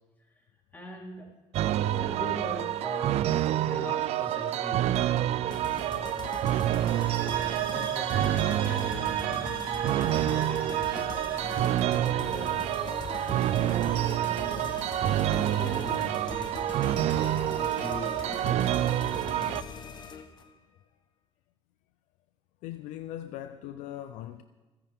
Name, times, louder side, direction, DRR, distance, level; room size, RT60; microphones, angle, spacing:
voice 1, 0.7-1.3 1.8-5.4 6.0-6.7 7.7-13.2 13.5-14.9 15.2-19.0, left 1 dB, 15° left, 4.0 m, -42 dB
sound 1, 1.5-19.6, right 13 dB, 55° right, 0.5 m, -28 dB
sound 2, 5.5-20.5, left 6 dB, 35° left, 1.1 m, -41 dB
sound 3, 6.8-11.8, right 5 dB, 40° right, 3.8 m, -41 dB
voice 2, 22.6-24.4, left 12 dB, 75° left, 0.7 m, -39 dB
27.5 x 10.0 x 3.7 m
cardioid pair, 130°, 12 cm